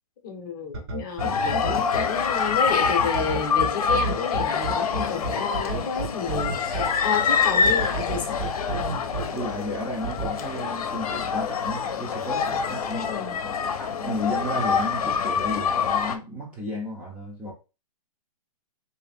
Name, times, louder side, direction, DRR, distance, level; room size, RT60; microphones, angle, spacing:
voice 1, 0.2-8.4 13.0-13.4, left 6 dB, 35° left, 0.8 m, -31 dB
sound 1, 0.7-2.0 2.8-6.8 7.6-9.2 10.0-10.3, right 3 dB, 40° right, 1.0 m, -30 dB
sound 2, 1.2-16.2, left 6 dB, 75° left, 0.7 m, -26 dB
voice 2, 9.3-13.2 13.8-17.5, left 1 dB, 5° right, 0.6 m, -33 dB
3.3 x 2.7 x 3.3 m
hypercardioid pair, 165°, 19 cm